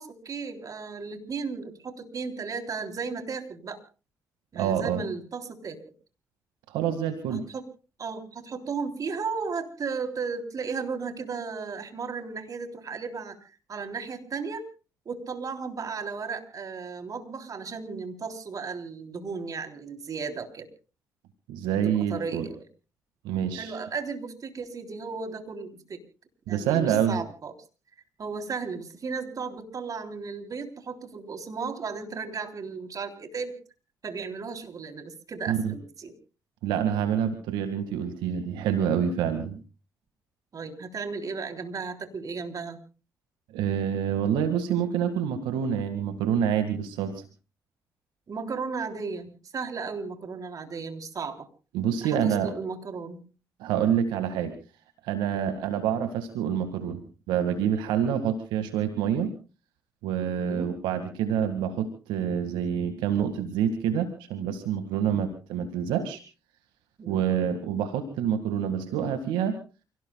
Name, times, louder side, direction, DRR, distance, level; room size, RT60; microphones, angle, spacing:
voice 1, 0.0-3.8 4.5-5.8 7.3-7.7 8.0-13.4 13.7-14.7 15.1-20.7 21.8-22.6 23.6-26.0 26.5-27.5 28.2-33.5 34.0-36.1 40.5-42.8 48.3-51.5 52.0-53.2 55.3-55.6 60.4-60.7 65.1-65.3 67.0-67.2, right 5 dB, 50° right, 7 dB, 3.5 m, -35 dB
voice 2, 4.5-5.0 6.7-7.5 21.5-22.5 23.2-23.8 26.5-27.2 35.5-35.7 36.6-39.6 43.5-47.2 51.7-52.5 53.6-54.5 55.0-59.3 60.0-66.2 67.1-69.6, right 8 dB, 90° right, 8 dB, 2.0 m, -27 dB
29.0 x 18.0 x 2.3 m, 0.34 s
supercardioid pair, 60°, 8 cm